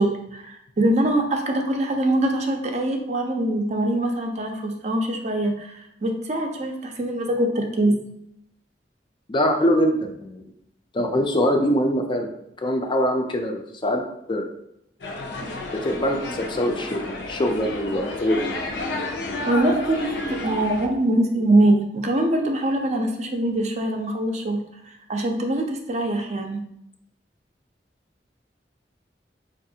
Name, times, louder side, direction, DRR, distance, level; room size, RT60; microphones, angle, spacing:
voice 1, 0.0-8.0 19.5-24.6 25.1-26.6, right 1 dB, 40° right, 3 dB, 0.4 m, -23 dB
voice 2, 9.3-10.5 10.9-12.3 12.6-14.0 14.3-14.5 15.3-15.4 15.8-18.4, equal, 25° left, 4 dB, 0.4 m, -23 dB
sound 1, 15.0-20.9, left 2 dB, 80° left, 0.6 m, -31 dB
4.5 x 2.4 x 2.7 m, 0.77 s
head